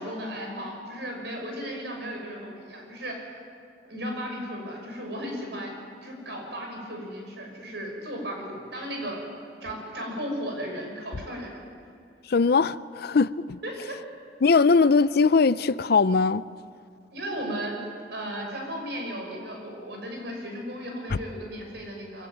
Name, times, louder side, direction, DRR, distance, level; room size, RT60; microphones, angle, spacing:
voice 1, 0.0-3.2 3.8-5.7 6.0-9.2 9.6-11.6 13.6-14.0 17.1-17.8 18.1-22.3, equal, 75° right, 6.0 m, -35 dB
voice 2, 12.3-13.6 14.4-16.4, left 4 dB, 60° left, 0.5 m, -20 dB
25.0 x 15.5 x 9.1 m
head